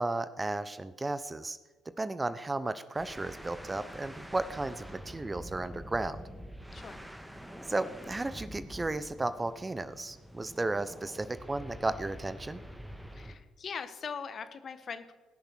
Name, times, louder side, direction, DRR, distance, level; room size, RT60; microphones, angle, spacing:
voice 1, 0.0-1.6 2.0-6.2 7.7-12.6, right 2 dB, 20° right, 14 dB, 0.8 m, -34 dB
sound 1, 2.9-13.5, equal, 5° right, 1.5 m, -46 dB
voice 2, 13.1-15.1, left 6 dB, 50° left, 11 dB, 1.2 m, -41 dB
19.5 x 6.7 x 6.3 m, 1.3 s
hypercardioid pair, 55°, 0 cm